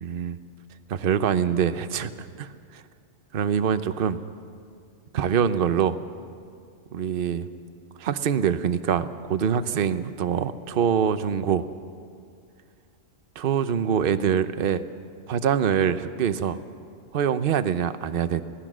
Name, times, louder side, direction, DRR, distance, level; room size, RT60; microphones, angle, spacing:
voice 1, 0.0-0.4 0.9-2.8 3.3-4.2 5.1-5.9 6.9-7.5 8.0-11.6 13.4-14.8 15.3-16.6 17.1-18.4, right 8 dB, 50° right, 12 dB, 0.9 m, -24 dB
26.0 x 17.5 x 6.2 m, 2.3 s
omnidirectional pair, 1.3 m